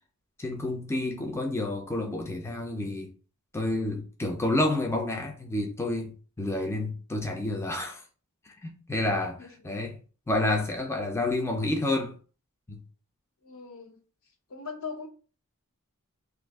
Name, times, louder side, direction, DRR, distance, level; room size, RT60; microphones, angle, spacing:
voice 1, 0.4-3.1 3.5-8.0 8.6-10.0 10.3-12.1 12.7-12.8, left 2 dB, 10° left, 0.4 m, -29 dB
voice 2, 13.4-14.0 14.5-15.1, left 5 dB, 65° left, 0.6 m, -39 dB
2.6 x 2.4 x 3.4 m
head